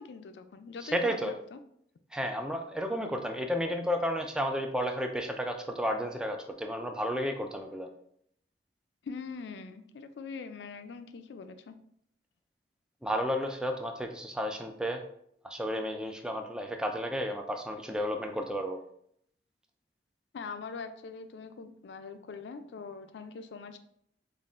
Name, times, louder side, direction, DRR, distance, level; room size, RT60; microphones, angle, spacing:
voice 1, 0.0-1.6 9.0-11.8 20.3-23.8, left 5 dB, 75° left, 10 dB, 0.3 m, -42 dB
voice 2, 0.8-1.3 2.1-7.9 13.0-15.0 15.4-18.8, equal, 5° right, 4 dB, 0.3 m, -32 dB
5.2 x 2.4 x 2.4 m, 0.69 s
head